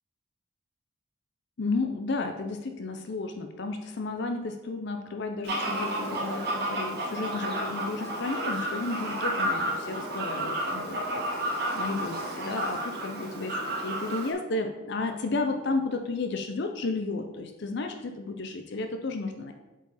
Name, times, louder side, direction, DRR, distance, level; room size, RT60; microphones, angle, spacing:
voice 1, 1.6-19.5, left 3 dB, 55° left, 6 dB, 0.5 m, -33 dB
Fowl, 5.4-14.3, right 1 dB, 50° right, 1.6 m, -31 dB
7.8 x 4.9 x 4.1 m, 1.1 s
head